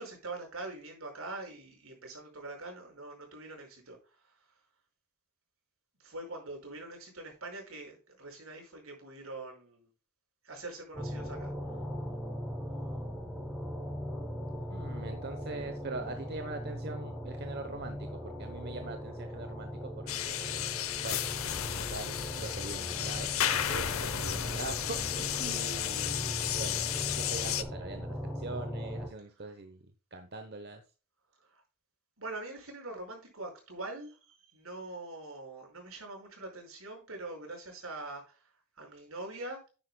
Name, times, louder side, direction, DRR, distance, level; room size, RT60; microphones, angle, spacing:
voice 1, 0.0-4.5 6.0-9.9 10.4-11.8 25.4-25.5 31.4-31.6 32.2-39.7, right 2 dB, 75° right, 1 dB, 5.3 m, -44 dB
sound 1, 10.9-29.1, equal, 5° left, 5.6 m, -39 dB
voice 2, 14.7-20.6 21.0-21.2 21.7-30.8, right 3 dB, 50° right, 7 dB, 0.9 m, -43 dB
sound 2, 20.1-27.6, left 10 dB, 75° left, 0.8 m, -33 dB
10.5 x 9.8 x 2.3 m, 0.34 s
head